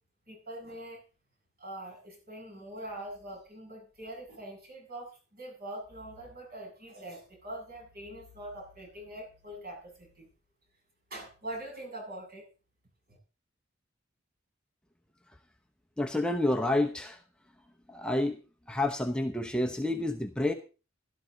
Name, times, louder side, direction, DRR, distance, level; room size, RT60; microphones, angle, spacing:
voice 1, 0.3-1.0 1.6-10.3 11.1-12.5 13.1-13.2, right 1 dB, 45° right, -1 dB, 7.9 m, -43 dB
voice 2, 16.0-17.2 17.9-18.4 18.7-20.5, left 1 dB, 5° left, 4 dB, 0.9 m, -29 dB
16.0 x 12.5 x 4.0 m, 0.35 s
head